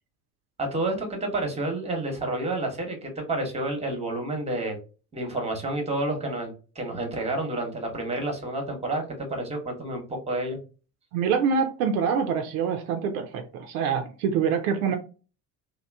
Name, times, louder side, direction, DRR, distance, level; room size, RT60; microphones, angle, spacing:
voice 1, 0.6-4.8 5.1-10.6, right 2 dB, 15° right, 0.9 m, -29 dB
voice 2, 11.1-15.0, right 6 dB, 65° right, 0.5 m, -25 dB
2.9 x 2.1 x 2.3 m
figure-of-eight pair, 55°, 47 cm